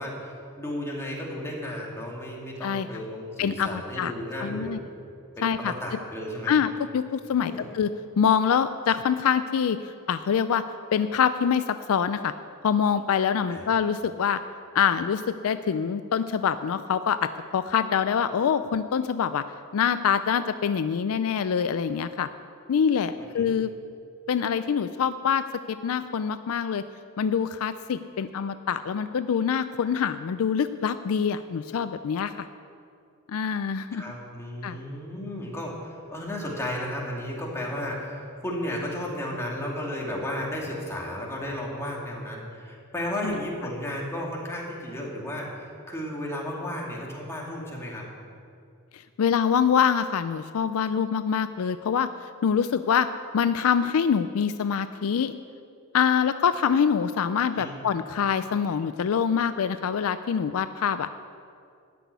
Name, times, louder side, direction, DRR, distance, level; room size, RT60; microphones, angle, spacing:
voice 1, 0.0-4.8 5.4-6.5 7.4-7.7 13.5-13.6 23.2-23.5 33.9-48.1 57.5-57.7, left 1 dB, 10° left, -3 dB, 2.4 m, -34 dB
voice 2, 3.4-4.1 4.4-4.8 5.4-5.7 6.5-10.6 10.9-12.3 12.6-14.4 14.7-19.4 19.7-22.3 22.7-23.7 24.3-26.8 27.2-32.5 33.3-34.0 34.6-34.8 43.2-43.4 48.9-52.1 52.4-53.1 53.3-55.3 55.9-61.1, left 7 dB, 70° left, 12 dB, 0.4 m, -25 dB
13.5 x 6.0 x 9.5 m, 2.4 s
head